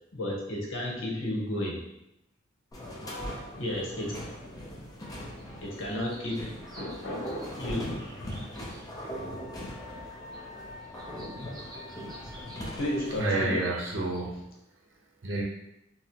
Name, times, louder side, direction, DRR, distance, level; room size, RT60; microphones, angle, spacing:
voice 1, 0.1-1.8 3.0-4.1 5.6-7.8 12.8-13.7, left 1 dB, 75° left, -2 dB, 0.9 m, -33 dB
sound 1, 2.7-13.3, equal, 20° left, 0.6 m, -40 dB
sound 2, 5.4-5.5 5.7-9.1 9.4-9.5 10.0-10.4 10.8-14.3, right 1 dB, 20° right, 0.6 m, -52 dB
Wind instrument woodwind instrument, 9.0-13.9, left 2 dB, 35° left, 1.3 m, -48 dB
voice 2, 13.1-14.5 15.2-15.4, right 2 dB, 70° right, -2 dB, 0.8 m, -29 dB
4.0 x 2.1 x 2.9 m, 0.84 s
head